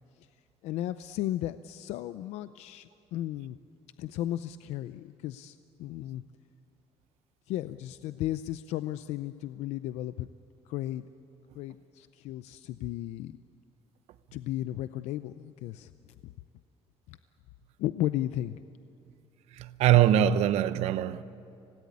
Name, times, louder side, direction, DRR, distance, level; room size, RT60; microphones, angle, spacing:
voice 1, 0.6-3.6 4.0-6.2 7.5-10.3 10.7-11.1 11.5-13.4 14.3-15.9 16.2-16.3 17.1-17.2 17.8-18.6, left 13 dB, 85° left, 0.6 m, -34 dB
voice 2, 19.6-21.2, right 11 dB, 75° right, 0.9 m, -23 dB
26.0 x 17.5 x 9.6 m
cardioid pair, 160°, 11 cm